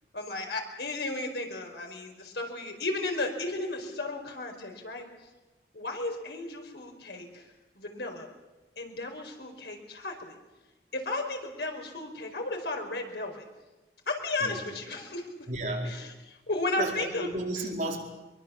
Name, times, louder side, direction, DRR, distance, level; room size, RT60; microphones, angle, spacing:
voice 1, 0.1-5.1 5.7-7.5 7.7-8.3 8.8-10.3 10.9-13.4 14.1-15.3 15.8-17.3, left 2 dB, 75° left, 3 dB, 5.0 m, -34 dB
voice 2, 14.4-14.8 15.5-16.2 16.8-18.0, right 2 dB, 45° right, 0 dB, 4.6 m, -33 dB
24.0 x 23.5 x 7.3 m, 1.1 s
head